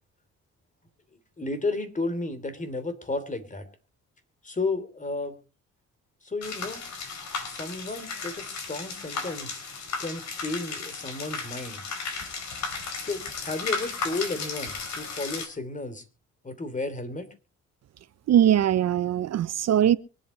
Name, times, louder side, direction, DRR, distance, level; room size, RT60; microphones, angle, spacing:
voice 1, 1.4-3.7 4.4-5.4 6.2-6.8 7.4-9.6 10.0-11.8 13.0-16.0 16.4-17.3, left 2 dB, 25° left, 3.0 m, -33 dB
sound 1, 6.4-15.5, left 4 dB, 65° left, 4.8 m, -35 dB
voice 2, 18.3-20.0, right 10 dB, 60° right, 0.7 m, -21 dB
24.0 x 8.4 x 4.2 m
cardioid pair, 90°, 30 cm